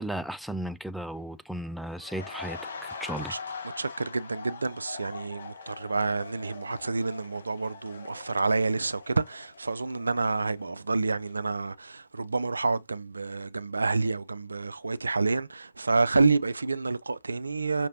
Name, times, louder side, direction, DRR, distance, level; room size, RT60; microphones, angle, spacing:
voice 1, 0.0-3.3, right 1 dB, ahead, 0.3 m, -35 dB
sound 1, 1.9-10.8 11.1-11.3, left 4 dB, 70° left, 1.4 m, -43 dB
voice 2, 3.8-17.9, right 3 dB, 80° right, 0.4 m, -28 dB
5.9 x 3.0 x 2.9 m
figure-of-eight pair, 115°, 0 cm